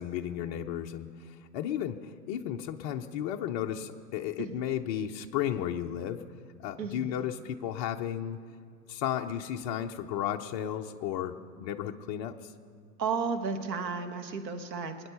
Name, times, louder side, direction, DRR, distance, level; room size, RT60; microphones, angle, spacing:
voice 1, 0.0-6.2 6.6-8.5 8.9-12.5, left 10 dB, 25° left, 3 dB, 0.3 m, -34 dB
voice 2, 6.8-7.2 13.0-15.1, right 5 dB, 85° right, 7 dB, 1.5 m, -33 dB
20.0 x 9.5 x 6.8 m, 2.2 s
hypercardioid pair, 115°, 49 cm